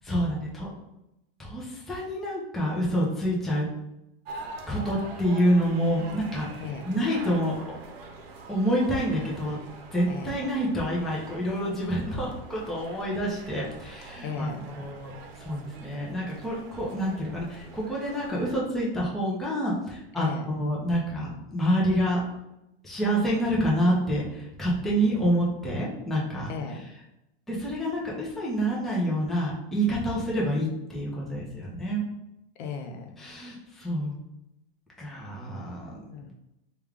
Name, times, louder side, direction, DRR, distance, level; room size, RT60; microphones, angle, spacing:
voice 1, 0.0-0.7 1.4-3.7 4.7-7.5 8.5-9.6 9.9-22.2 22.8-26.5 27.5-32.0 33.2-34.1 35.0-36.0, equal, ahead, -5 dB, 0.5 m, -27 dB
sound 1, 4.2-18.6, right 3 dB, 75° right, 0.7 m, -44 dB
voice 2, 10.1-10.4 14.2-14.7 20.2-20.5 26.5-26.9 32.6-33.1 36.1-36.3, left 5 dB, 55° left, 4 dB, 0.5 m, -36 dB
3.4 x 2.3 x 3.3 m, 0.88 s
supercardioid pair, 145°, 31 cm